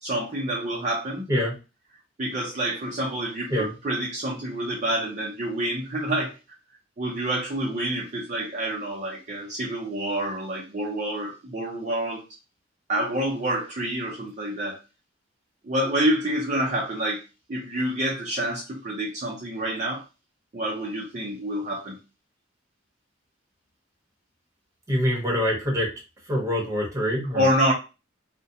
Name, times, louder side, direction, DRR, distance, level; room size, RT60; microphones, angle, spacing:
voice 1, 0.0-1.3 2.2-6.3 7.0-12.2 12.9-14.8 15.6-17.2 17.5-20.0 20.5-22.0 27.3-27.7, right 1 dB, 35° right, -4 dB, 0.5 m, -27 dB
voice 2, 24.9-25.9 26.3-27.4, equal, 15° right, -3 dB, 1.0 m, -25 dB
2.4 x 2.1 x 2.7 m, 0.30 s
head